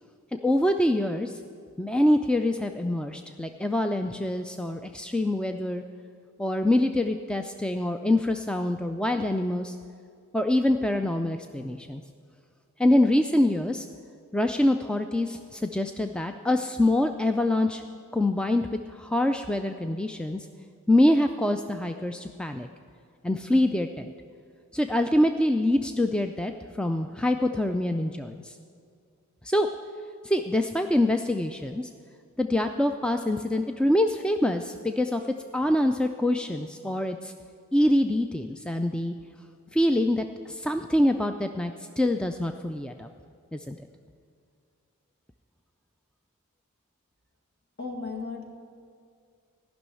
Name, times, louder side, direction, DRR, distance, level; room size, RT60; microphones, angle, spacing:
voice 1, 0.3-1.4 1.8-5.8 6.4-9.8 10.3-12.0 12.8-13.9 14.3-17.8 18.1-18.7 18.9-20.5 20.9-22.7 23.2-24.1 24.7-28.5 29.4-29.7 30.2-31.9 32.4-35.2 35.5-37.3 37.7-39.1 39.7-43.1 43.5-43.8, left 1 dB, 5° left, 6 dB, 0.3 m, -25 dB
voice 2, 47.8-48.4, left 4 dB, 50° left, 2 dB, 1.8 m, -34 dB
14.0 x 6.2 x 9.7 m, 2.2 s
head